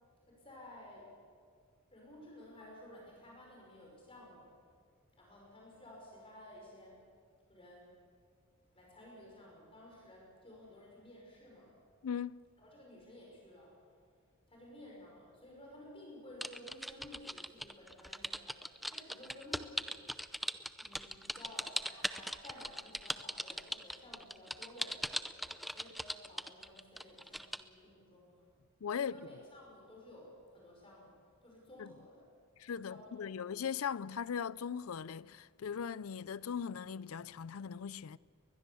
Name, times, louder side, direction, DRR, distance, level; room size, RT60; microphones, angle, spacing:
voice 1, 0.3-1.1 1.9-4.5 5.2-7.0 7.5-7.9 8.7-11.7 12.6-13.7 14.5-18.6 18.9-20.2 20.8-28.5 29.0-32.3 32.8-33.5, left 1 dB, 25° left, 5.6 m, -54 dB
voice 2, 12.0-12.5 28.8-29.2 31.8-31.9 32.6-38.2, left 7 dB, 75° left, 0.5 m, -39 dB
sound 1, 16.4-27.6, equal, ahead, 0.5 m, -39 dB
22.0 x 21.0 x 7.0 m
head